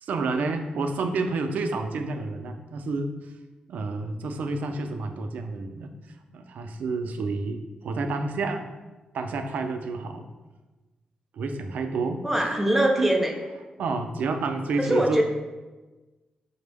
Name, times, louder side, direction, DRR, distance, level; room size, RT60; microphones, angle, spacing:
voice 1, 0.0-3.3 3.7-5.9 6.3-8.7 9.1-10.3 11.3-13.1 13.8-15.2, right 3 dB, 75° right, 6 dB, 0.4 m, -29 dB
voice 2, 12.2-13.3 14.8-15.2, right 1 dB, 5° right, 1 dB, 0.6 m, -22 dB
5.1 x 2.0 x 3.3 m, 1.2 s
cardioid pair, 80°, 3 cm